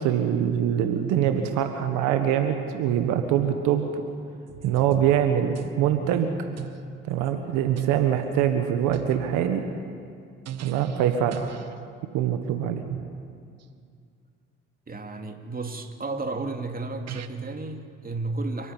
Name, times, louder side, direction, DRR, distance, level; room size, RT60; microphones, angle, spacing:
voice 1, 0.0-4.0 4.6-6.3 7.1-9.6 10.6-11.5 12.1-12.8, right 9 dB, 80° right, 7 dB, 1.4 m, -24 dB
sound 1, 4.5-5.8 6.0-6.9 7.3-7.5 7.8-8.1 8.4-8.5 8.9-9.6 10.5-11.1 11.3-11.7 12.9-13.1 16.5-16.6 17.1-17.3, right 9 dB, 60° right, 1.1 m, -36 dB
voice 2, 14.9-18.7, right 3 dB, 30° right, 5 dB, 2.6 m, -33 dB
28.0 x 10.0 x 10.0 m, 2.3 s
hypercardioid pair, 55°, 30 cm